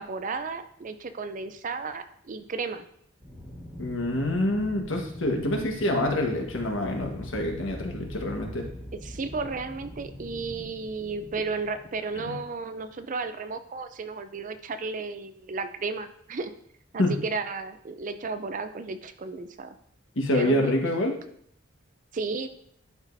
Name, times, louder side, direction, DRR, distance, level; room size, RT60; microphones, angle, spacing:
voice 1, 0.0-2.8 8.9-16.5 16.9-19.8 20.3-20.7 22.1-22.5, right 4 dB, 40° right, 10 dB, 0.5 m, -33 dB
Aircraft, 3.2-12.7, equal, 25° right, 1.5 m, -42 dB
voice 2, 3.8-8.6 12.2-12.3 17.0-17.1 20.1-21.1, left 1 dB, 75° left, 2 dB, 1.4 m, -26 dB
11.5 x 4.9 x 2.7 m, 0.66 s
head